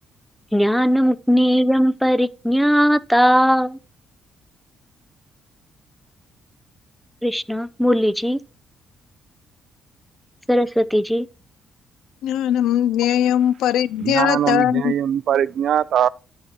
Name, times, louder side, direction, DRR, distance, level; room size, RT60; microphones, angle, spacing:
voice 1, 0.5-3.8 7.2-8.4 10.5-11.3, equal, ahead, 0.5 m, -18 dB
voice 2, 12.2-14.9, left 11 dB, 85° left, 0.3 m, -20 dB
voice 3, 14.0-16.1, right 9 dB, 65° right, 0.3 m, -21 dB
10.5 x 4.0 x 4.4 m
cardioid pair, 90°, 0 cm